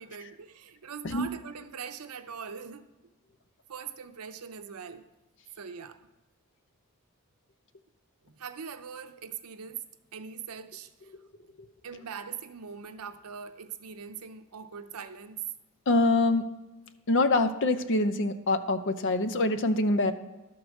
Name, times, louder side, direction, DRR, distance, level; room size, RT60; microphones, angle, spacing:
voice 1, 0.0-2.8 3.7-5.1 5.6-6.0 8.2-9.8 10.1-10.9 11.8-15.4, right 7 dB, 85° right, 0.7 m, -41 dB
voice 2, 15.9-16.5 17.1-20.1, left 2 dB, 60° left, 0.7 m, -25 dB
12.5 x 4.7 x 6.5 m
head